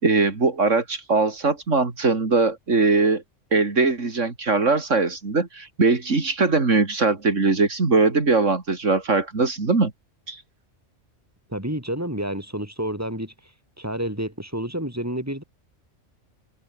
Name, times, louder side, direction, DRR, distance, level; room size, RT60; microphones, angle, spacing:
voice 1, 0.0-3.2 3.5-9.9 10.3-10.4, right 3 dB, 85° right, 3.3 m, -21 dB
voice 2, 11.5-13.3 13.8-15.4, right 1 dB, 10° right, 6.1 m, -29 dB
omnidirectional pair, 1.3 m